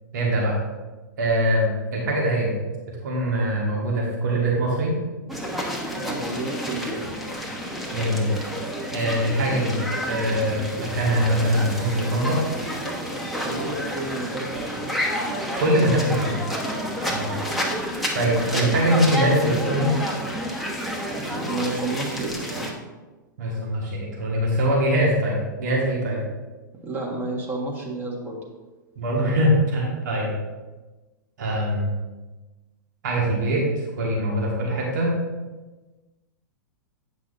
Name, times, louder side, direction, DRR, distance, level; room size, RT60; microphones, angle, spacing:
voice 1, 0.1-0.6 1.2-2.5 3.0-5.0 7.9-8.3 8.9-9.8 10.0-12.4 15.6-16.3 17.1-17.3 18.1-19.9 23.4-26.2 29.0-30.3 31.4-31.9 33.0-33.6 34.0-35.1, right 1 dB, 60° right, -3 dB, 1.6 m, -22 dB
sound 1, 5.3-22.7, equal, ahead, 1.0 m, -30 dB
voice 2, 5.9-7.0 13.4-14.8 21.2-22.7 26.8-28.4, right 2 dB, 20° right, -2 dB, 1.5 m, -31 dB
8.6 x 5.8 x 2.6 m, 1.2 s
figure-of-eight pair, 105°, 11 cm